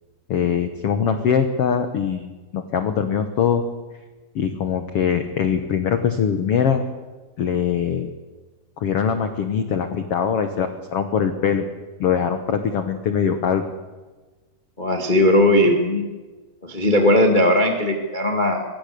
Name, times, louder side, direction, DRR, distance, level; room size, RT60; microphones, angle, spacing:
voice 1, 0.3-2.3 2.5-3.6 4.3-6.8 7.4-8.1 8.8-11.6 12.0-13.6, left 7 dB, 80° left, 8 dB, 1.3 m, -22 dB
voice 2, 14.8-16.1 16.6-18.6, left 1 dB, 30° left, 3 dB, 0.8 m, -18 dB
23.5 x 22.0 x 6.8 m, 1.3 s
omnidirectional pair, 4.4 m